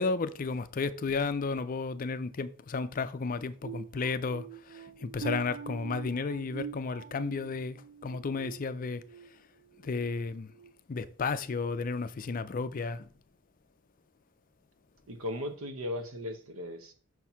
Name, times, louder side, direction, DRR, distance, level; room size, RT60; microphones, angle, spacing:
voice 1, 0.0-9.0 9.8-10.5 10.9-13.1, left 4 dB, 40° left, 0.4 m, -33 dB
sound 1, 3.6-9.3 9.7-10.0 10.5-10.7, right 7 dB, 50° right, 0.3 m, -44 dB
voice 2, 15.1-16.9, left 1 dB, 75° right, 1.2 m, -37 dB
6.4 x 4.6 x 5.5 m
head